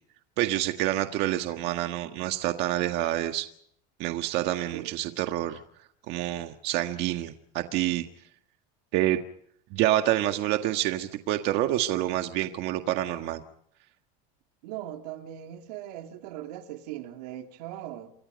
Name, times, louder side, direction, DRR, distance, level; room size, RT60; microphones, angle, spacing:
voice 1, 0.4-3.5 4.0-5.6 6.1-8.0 8.9-9.2 9.7-13.4, right 14 dB, 55° right, 1.6 m, -27 dB
voice 2, 14.6-18.1, right 12 dB, 90° right, 3.0 m, -39 dB
29.0 x 25.0 x 5.3 m
cardioid pair, 145°, 20 cm